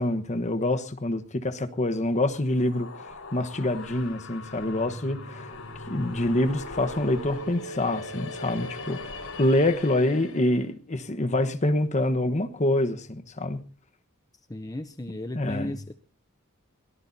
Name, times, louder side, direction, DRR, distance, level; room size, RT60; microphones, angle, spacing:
voice 1, 0.0-2.9 3.3-5.6 5.9-9.0 9.4-13.6 15.3-15.8, left 1 dB, 35° left, 1.2 m, -26 dB
sound 1, 2.4-10.6, left 2 dB, 85° left, 4.6 m, -40 dB
voice 2, 14.5-15.9, left 1 dB, 15° left, 0.7 m, -35 dB
22.5 x 18.0 x 2.7 m
head